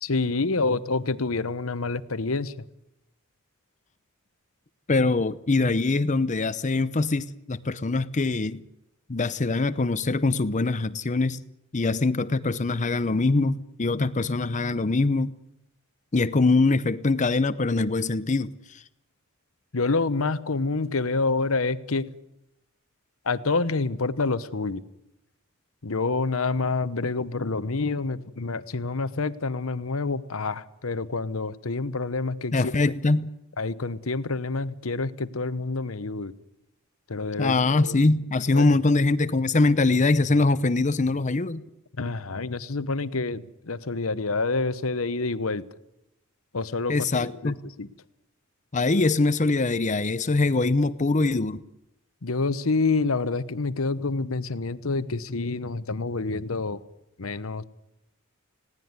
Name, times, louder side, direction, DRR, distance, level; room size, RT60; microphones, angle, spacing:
voice 1, 0.0-2.7 19.7-22.1 23.2-24.8 25.8-32.7 33.6-36.3 37.1-38.0 38.5-38.7 42.0-45.6 46.5-47.9 52.2-56.8 57.2-57.6, left 3 dB, 80° left, 1.0 m, -27 dB
voice 2, 4.9-8.6 9.1-11.4 11.7-15.3 16.1-18.8 32.5-33.3 37.4-41.6 46.9-47.6 48.7-51.6, left 3 dB, 35° left, 0.7 m, -23 dB
20.0 x 17.5 x 9.6 m
head